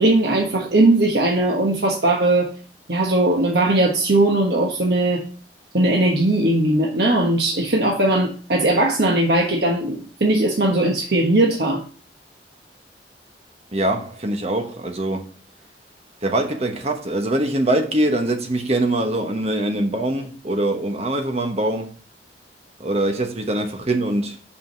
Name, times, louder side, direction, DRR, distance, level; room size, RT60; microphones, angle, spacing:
voice 1, 0.0-2.5 2.9-5.2 5.7-11.8, right 2 dB, 65° right, 1.3 m, -19 dB
voice 2, 13.7-15.3 16.2-22.0 22.8-24.4, right 1 dB, 35° right, 1.1 m, -23 dB
5.7 x 5.0 x 6.0 m
head